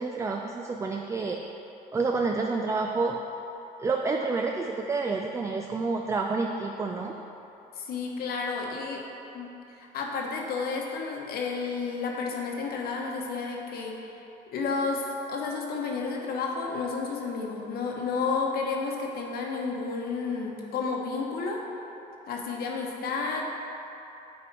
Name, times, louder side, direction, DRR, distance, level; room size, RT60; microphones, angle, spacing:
voice 1, 0.0-1.4 1.9-3.2 3.8-7.2, right 4 dB, 15° right, 2 dB, 0.4 m, -29 dB
voice 2, 7.8-9.0 9.3-9.5 9.8-14.0 14.5-21.6 22.3-23.5, left 4 dB, 65° left, 0 dB, 1.1 m, -31 dB
8.2 x 4.5 x 4.7 m, 3.0 s
cardioid pair, 110°, 17 cm